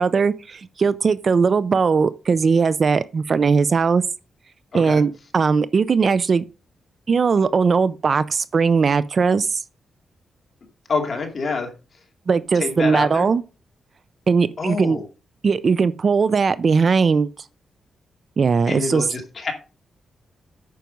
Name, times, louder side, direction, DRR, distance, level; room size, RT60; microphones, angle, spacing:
voice 1, 0.0-4.0 4.7-6.4 7.1-9.6 12.3-13.4 14.3-15.0 15.4-17.3 18.4-19.1, right 5 dB, 35° right, 0.4 m, -19 dB
voice 2, 10.9-11.7 12.6-13.3 14.6-15.0 18.7-19.5, left 4 dB, 35° left, 2.5 m, -26 dB
9.2 x 6.0 x 5.3 m
wide cardioid pair, 165°, 0 cm